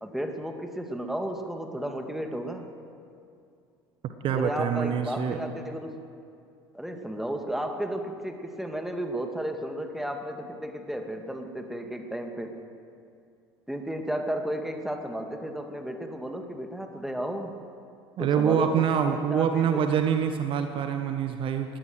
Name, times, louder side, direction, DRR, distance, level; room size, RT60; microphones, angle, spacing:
voice 1, 0.0-2.7 4.3-5.9 6.7-12.6 13.7-17.6 18.2-19.9, right 1 dB, ahead, 5 dB, 2.3 m, -33 dB
voice 2, 4.2-5.4 18.2-21.8, right 8 dB, 45° right, 7 dB, 1.4 m, -25 dB
21.0 x 17.0 x 7.9 m, 2.5 s
figure-of-eight pair, 65°, 13 cm